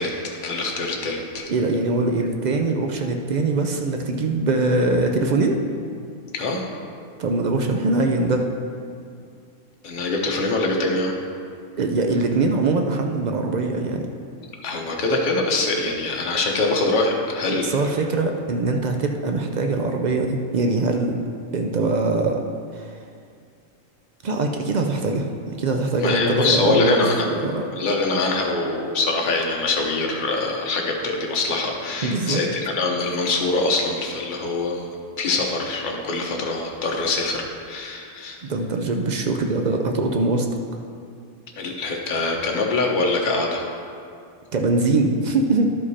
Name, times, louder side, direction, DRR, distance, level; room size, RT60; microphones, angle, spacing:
voice 1, 0.0-1.5 6.3-6.7 9.8-11.1 14.6-17.7 26.0-27.3 27.8-34.9 35.2-38.4 41.6-43.6, left 3 dB, 40° left, 0 dB, 1.0 m, -24 dB
voice 2, 1.5-5.6 7.2-8.5 11.8-14.1 17.6-21.2 21.5-22.4 22.8-22.9 24.2-27.6 32.0-32.4 38.4-40.5 44.5-45.7, right 3 dB, 65° right, 3 dB, 0.4 m, -22 dB
11.5 x 5.0 x 4.2 m, 2.3 s
omnidirectional pair, 1.4 m